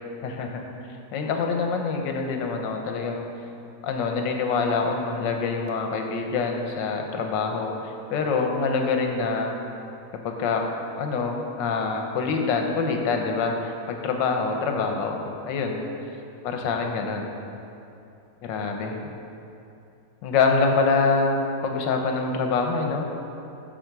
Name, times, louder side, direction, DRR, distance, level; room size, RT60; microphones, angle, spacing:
voice 1, 0.2-0.6 1.1-3.2 3.8-9.6 10.2-10.7 11.0-15.9 16.4-17.3 18.4-19.1 20.2-23.1, left 4 dB, 90° left, 3 dB, 1.5 m, -25 dB
10.5 x 4.2 x 4.7 m, 2.7 s
omnidirectional pair, 1.9 m